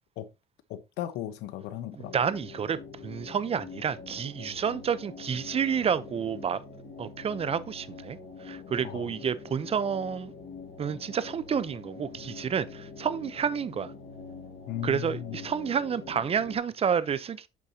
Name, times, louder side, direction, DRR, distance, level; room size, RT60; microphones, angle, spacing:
voice 1, 0.7-2.1 8.8-9.1 14.7-15.4, left 11 dB, 90° left, 1.0 m, -36 dB
voice 2, 1.9-6.6 7.0-10.3 10.8-13.9 14.8-17.5, right 7 dB, 35° right, 0.7 m, -30 dB
sound 1, 2.0-16.6, left 4 dB, 55° left, 4.0 m, -45 dB
8.6 x 7.0 x 2.9 m
cardioid pair, 110°, 17 cm